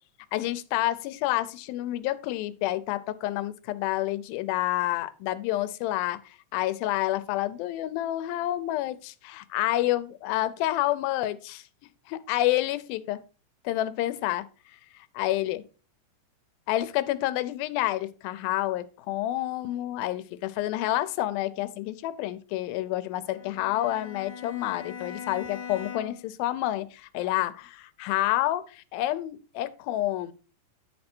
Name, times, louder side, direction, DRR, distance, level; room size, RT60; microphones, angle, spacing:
voice 1, 0.3-11.7 12.1-13.2 13.6-14.5 14.9-15.6 16.7-30.3, left 15 dB, 90° left, 2.4 m, -29 dB
Bowed string instrument, 23.2-26.4, left 7 dB, 65° left, 1.9 m, -41 dB
10.0 x 4.2 x 4.4 m
omnidirectional pair, 4.1 m